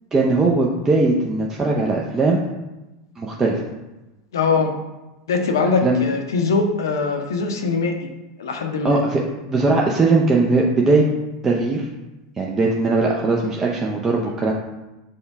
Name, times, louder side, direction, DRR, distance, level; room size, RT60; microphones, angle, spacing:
voice 1, 0.1-2.4 3.2-3.6 5.8-6.0 8.8-9.2 9.5-11.1 11.4-11.9 12.4-14.5, right 3 dB, 20° right, -2 dB, 0.5 m, -19 dB
voice 2, 4.3-4.7 5.3-8.1 8.4-9.0, left 4 dB, 85° left, 4 dB, 0.6 m, -21 dB
5.3 x 2.3 x 3.5 m, 1.0 s
hypercardioid pair, 95°, 2 cm